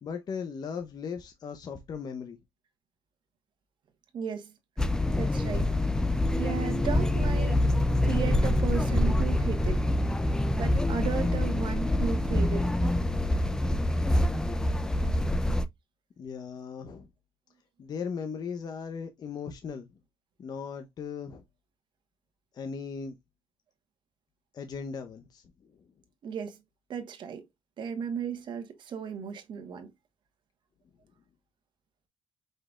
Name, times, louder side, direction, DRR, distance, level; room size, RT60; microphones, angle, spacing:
voice 1, 0.0-2.4 16.2-17.1 17.8-19.9 20.4-21.4 22.5-23.2 24.5-25.4, left 6 dB, 45° left, 0.7 m, -37 dB
voice 2, 4.1-4.5 5.2-5.7 6.3-7.6 8.0-9.8 10.6-12.6 26.2-26.6 26.9-27.4 27.8-29.9, right 7 dB, 55° right, 1.2 m, -35 dB
sound 1, 4.8-15.6, left 1 dB, 5° left, 0.4 m, -26 dB
5.1 x 3.9 x 2.3 m
cardioid pair, 105°, 9 cm